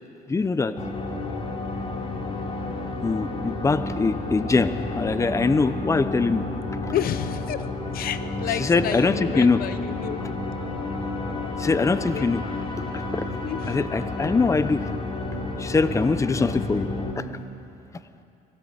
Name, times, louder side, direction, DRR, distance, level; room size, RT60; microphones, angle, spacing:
voice 1, 0.3-0.7 3.0-6.4 6.8-6.9 8.6-9.6 11.6-12.4 12.9-13.4 13.7-14.9 15.6-16.9 17.1-17.2, left 4 dB, 20° left, 12 dB, 0.8 m, -23 dB
sound 1, 0.8-17.1, left 2 dB, 35° left, 3.3 m, -31 dB
voice 2, 6.9-7.7 7.9-10.2 12.1-12.3 13.3-13.8, left 11 dB, 60° left, 13 dB, 0.8 m, -30 dB
21.5 x 17.5 x 8.0 m, 2.6 s
cardioid pair, 110°, 17 cm